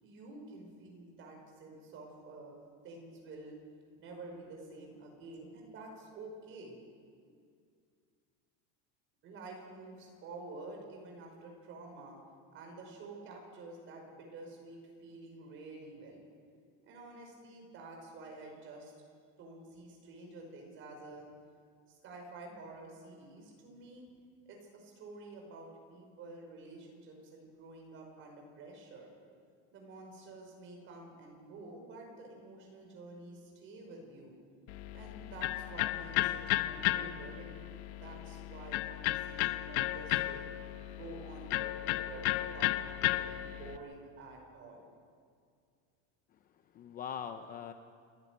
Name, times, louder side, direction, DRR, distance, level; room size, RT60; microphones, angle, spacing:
voice 1, 0.0-2.6 2.8-3.6 4.0-6.8 7.2-7.4 9.2-12.2 12.5-16.2 16.8-18.9 19.4-21.3 21.9-24.1 24.5-29.1 29.7-34.3 34.9-37.6 38.0-40.4 40.9-42.8 43.1-44.8, right 2 dB, 35° right, 1 dB, 5.5 m, -49 dB
Electric guitar, 34.7-43.8, left 15 dB, 80° left, 1.0 m, -34 dB
voice 2, 46.3-47.7, left 8 dB, 25° left, 8 dB, 0.6 m, -43 dB
29.0 x 11.5 x 9.6 m, 2.2 s
cardioid pair, 170°, 34 cm